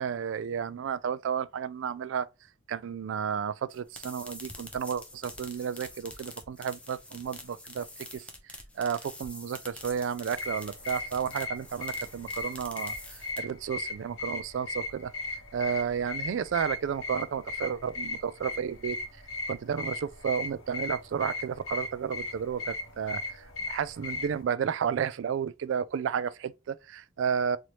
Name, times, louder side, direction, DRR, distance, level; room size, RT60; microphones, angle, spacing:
voice 1, 0.0-2.3 2.7-7.9 8.1-8.2 8.8-15.1 15.5-19.0 19.5-27.6, right 7 dB, 70° right, 0.3 m, -32 dB
sound 1, 3.7-13.7, left 2 dB, 5° left, 0.4 m, -46 dB
sound 2, 10.3-24.4, left 3 dB, 80° left, 1.0 m, -38 dB
3.0 x 2.7 x 3.0 m
head